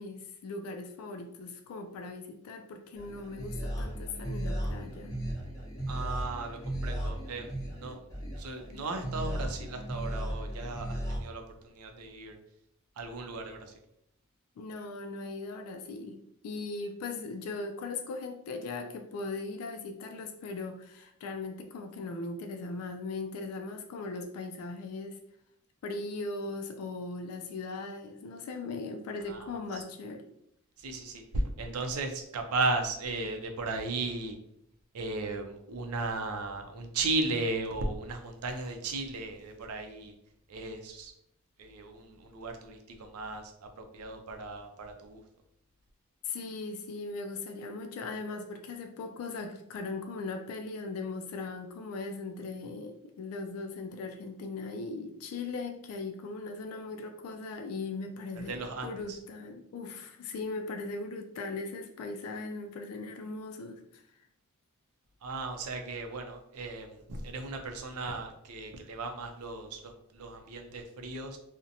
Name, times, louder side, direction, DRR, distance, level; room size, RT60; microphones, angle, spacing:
voice 1, 0.0-5.1 14.6-25.2 25.8-30.2 46.2-64.0, left 3 dB, 75° left, 10 dB, 0.3 m, -39 dB
sound 1, 3.0-11.2, right 1 dB, 15° left, 0.7 m, -36 dB
voice 2, 5.9-8.0 8.4-12.4 13.0-13.7 29.2-29.8 30.8-34.4 34.9-40.1 40.5-41.1 41.6-45.2 58.4-59.2 65.2-71.4, right 3 dB, 90° right, 5 dB, 0.4 m, -36 dB
2.5 x 2.1 x 2.7 m, 0.77 s
head